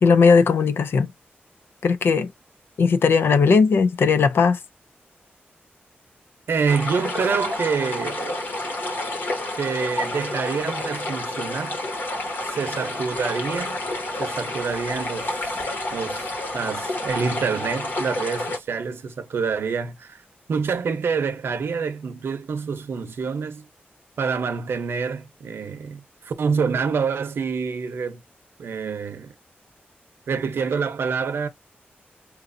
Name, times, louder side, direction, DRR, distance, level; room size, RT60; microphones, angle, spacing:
voice 1, 0.0-1.1 1.8-2.3 2.8-4.6, left 5 dB, 75° left, 0.5 m, -17 dB
voice 2, 6.5-8.5 9.6-11.8 12.4-13.8 14.2-15.6 15.9-16.3 16.5-20.2 20.5-23.6 24.2-28.2 28.6-29.3 30.3-31.5, right 5 dB, 80° right, 0.8 m, -27 dB
sound 1, 6.7-18.6, left 1 dB, 55° left, 1.2 m, -29 dB
4.6 x 2.5 x 2.6 m
wide cardioid pair, 170°, 4 cm